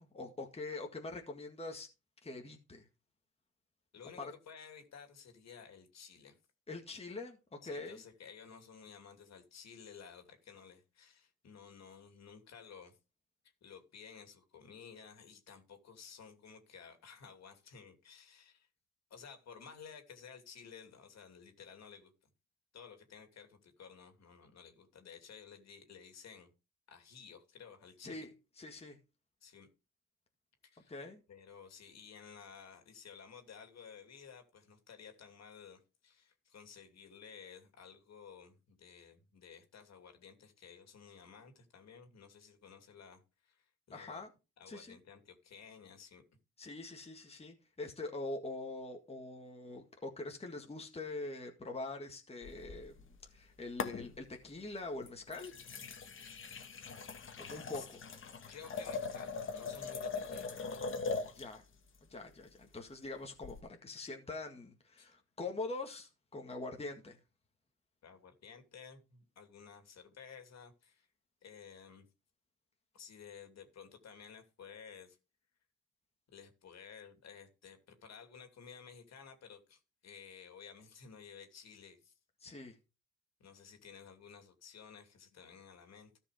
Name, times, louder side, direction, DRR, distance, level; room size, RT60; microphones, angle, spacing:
voice 1, 0.0-1.9 2.2-2.9 4.2-4.3 6.7-8.0 28.0-28.3 28.6-29.0 30.9-31.2 43.9-44.3 44.7-45.0 46.6-55.5 57.4-58.0 61.3-61.6 62.1-67.2 82.4-82.8, left 2 dB, 20° left, 1.8 m, -44 dB
voice 2, 3.9-6.4 7.6-13.0 13.6-18.7 19.1-22.1 22.7-26.5 26.9-28.3 29.4-29.7 30.6-30.9 31.3-44.2 44.6-46.2 57.7-57.9 58.5-61.0 65.0-65.1 68.0-71.1 71.4-72.1 72.9-75.2 76.3-82.1 83.4-86.2, left 6 dB, 60° left, 2.8 m, -54 dB
sound 1, 52.4-53.4 53.8-54.5 55.0-61.6 63.4-63.6, left 4 dB, 40° left, 1.7 m, -41 dB
13.5 x 5.4 x 5.0 m
cardioid pair, 90°, 30 cm